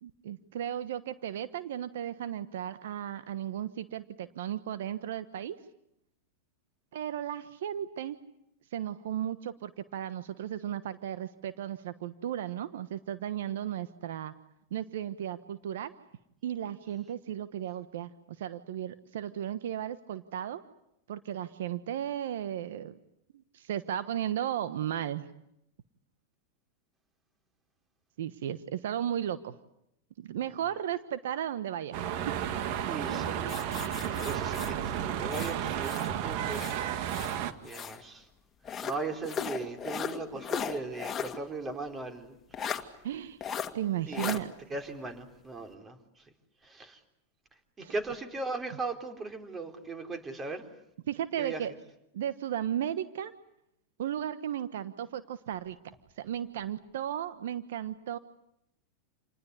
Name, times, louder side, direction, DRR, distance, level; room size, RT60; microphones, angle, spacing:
voice 1, 0.0-5.6 6.9-8.2 8.7-14.3 14.7-15.9 16.4-18.1 18.4-20.6 21.1-23.0 23.5-25.3 28.2-29.6 30.2-32.4 43.0-43.4 43.7-44.5 47.8-47.9 51.1-51.7 52.1-53.3 54.0-58.2, right 10 dB, 75° right, 13 dB, 1.1 m, -35 dB
sound 1, 31.9-37.5, right 10 dB, 55° right, 1.9 m, -32 dB
voice 2, 32.9-33.6 34.0-37.1 37.6-38.3 38.8-42.7 44.1-44.4 44.7-46.0 46.6-47.0 47.8-50.7 51.4-51.6, right 3 dB, 20° right, 6 dB, 3.9 m, -38 dB
sound 2, 33.5-36.1 36.5-38.0 38.6-41.4 41.7-41.8 42.5-42.8 43.4-43.7 44.1-44.4, left 7 dB, 25° left, 2.2 m, -37 dB
28.0 x 20.0 x 9.8 m, 0.82 s
hypercardioid pair, 110°, 0 cm